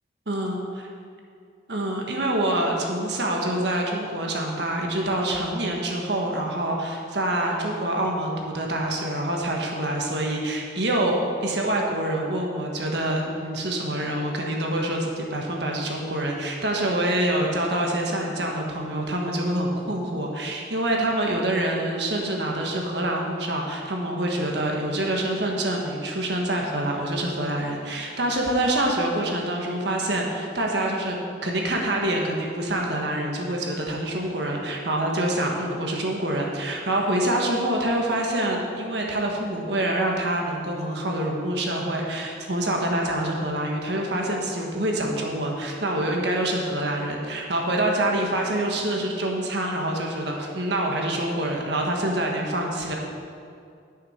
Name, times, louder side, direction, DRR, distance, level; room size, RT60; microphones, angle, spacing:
voice 1, 0.3-0.6 1.7-31.2 31.4-53.0, right 1 dB, 70° right, 0 dB, 1.4 m, -26 dB
9.5 x 6.6 x 5.6 m, 2.4 s
head